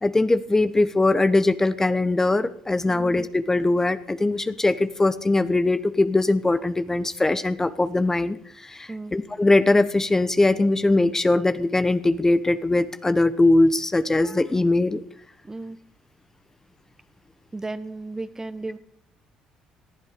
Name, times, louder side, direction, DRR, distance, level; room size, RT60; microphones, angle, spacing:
voice 1, 0.0-15.0, left 2 dB, 20° left, 13 dB, 1.0 m, -21 dB
voice 2, 15.4-15.8 17.5-18.8, right 2 dB, 20° right, 14 dB, 1.2 m, -34 dB
19.0 x 12.0 x 5.1 m, 0.63 s
supercardioid pair, 65°, 3 cm